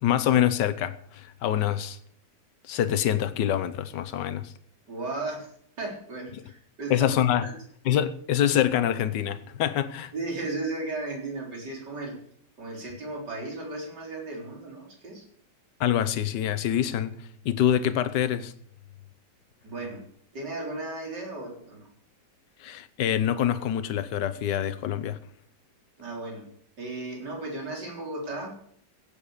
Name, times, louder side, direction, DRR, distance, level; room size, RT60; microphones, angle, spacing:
voice 1, 0.0-2.0 2.7-4.5 6.9-7.4 7.8-10.1 15.8-18.5 22.6-25.2, left 10 dB, 85° left, 1.5 m, -25 dB
voice 2, 4.9-5.5 5.8-7.1 7.4-7.5 10.1-12.2 12.6-15.3 19.6-20.0 20.3-21.9 26.0-26.5 26.8-28.5, right 2 dB, 75° right, 4.5 m, -35 dB
16.0 x 8.9 x 6.6 m
omnidirectional pair, 1.9 m